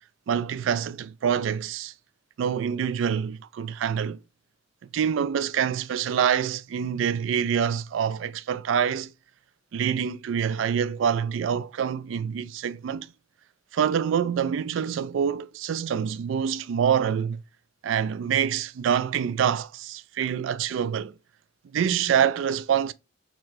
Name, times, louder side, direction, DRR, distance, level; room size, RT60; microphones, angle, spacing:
voice 1, 0.3-1.9 2.4-4.2 4.9-9.1 9.7-13.1 13.7-17.4 17.8-21.1 21.7-22.9, right 8 dB, 75° right, 0.3 m, -26 dB
4.2 x 3.0 x 2.6 m
head